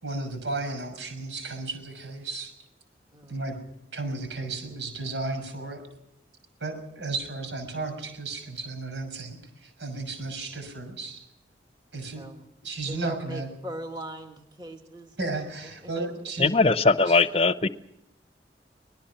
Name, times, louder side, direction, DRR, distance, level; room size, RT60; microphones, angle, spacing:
voice 1, 0.0-2.5 3.3-3.6 3.9-5.8 6.6-11.3 11.9-12.2 12.6-13.5 15.2-16.5 17.1-17.2, right 3 dB, 90° right, 6.1 m, -34 dB
voice 2, 12.9-16.3, right 1 dB, 25° right, 1.8 m, -41 dB
voice 3, 16.4-17.7, left 3 dB, 35° left, 0.7 m, -20 dB
25.0 x 20.0 x 5.8 m
head